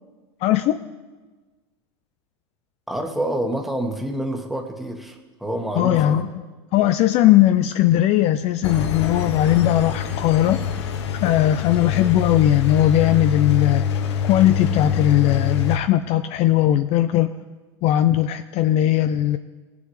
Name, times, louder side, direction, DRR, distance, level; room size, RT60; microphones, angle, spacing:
voice 1, 0.4-0.8 5.8-6.4 6.7-10.7 11.2-13.8 14.3-17.3 17.8-19.4, left 13 dB, 45° left, 10 dB, 0.4 m, -18 dB
voice 2, 2.9-6.3, right 1 dB, ahead, 2 dB, 1.4 m, -27 dB
Engine, 8.6-15.8, left 7 dB, 70° left, 0.8 m, -25 dB
18.0 x 7.0 x 3.2 m, 1.3 s
hypercardioid pair, 90°, 15 cm